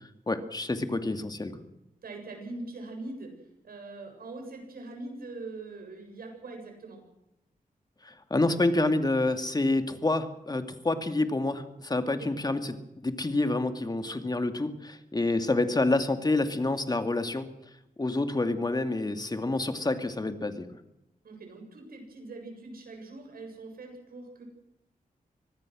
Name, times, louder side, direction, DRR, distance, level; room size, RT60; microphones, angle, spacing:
voice 1, 0.3-1.6 8.0-12.8 13.0-17.5 18.0-20.7, left 2 dB, 25° left, 7 dB, 2.4 m, -28 dB
voice 2, 2.0-3.3 3.6-7.0 12.1-12.3 21.2-24.4, right 2 dB, 85° right, 3 dB, 7.7 m, -42 dB
25.0 x 19.5 x 6.4 m, 0.87 s
wide cardioid pair, 90°, 15 cm